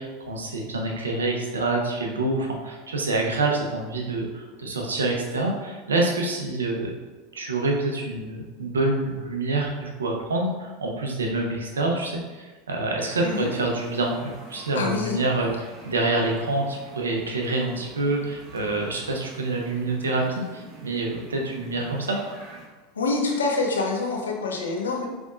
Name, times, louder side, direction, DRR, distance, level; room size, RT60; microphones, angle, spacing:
voice 1, 0.0-6.9 7.3-22.2, right 2 dB, 85° right, 0 dB, 0.7 m, -27 dB
sound 1, 13.0-22.7, right 2 dB, 45° right, 1.0 m, -46 dB
voice 2, 14.7-15.2 22.9-25.1, left 3 dB, 85° left, 1 dB, 0.7 m, -26 dB
5.2 x 3.4 x 2.5 m, 1.3 s
hypercardioid pair, 85°, 0 cm